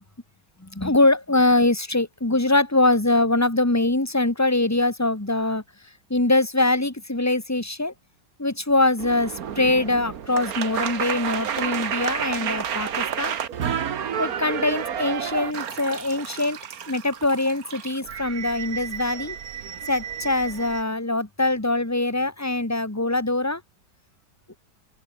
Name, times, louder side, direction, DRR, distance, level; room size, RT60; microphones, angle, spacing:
voice 1, 0.6-5.6 6.1-7.9 8.4-13.3 14.2-16.6 16.9-19.4 19.9-23.6, left 2 dB, 10° left, 2.2 m, -23 dB
sound 1, 9.0-20.8, right 8 dB, 50° right, 1.5 m, -31 dB
open air
omnidirectional pair, 2.3 m